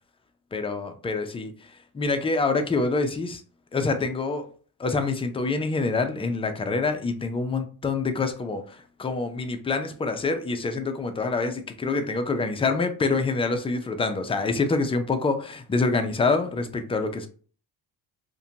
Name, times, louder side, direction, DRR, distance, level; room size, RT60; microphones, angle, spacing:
voice 1, 0.5-1.5 1.9-3.4 3.7-4.5 4.8-17.3, left 3 dB, 15° left, 0.4 m, -26 dB
2.5 x 2.2 x 2.7 m
cardioid pair, 90°, 37 cm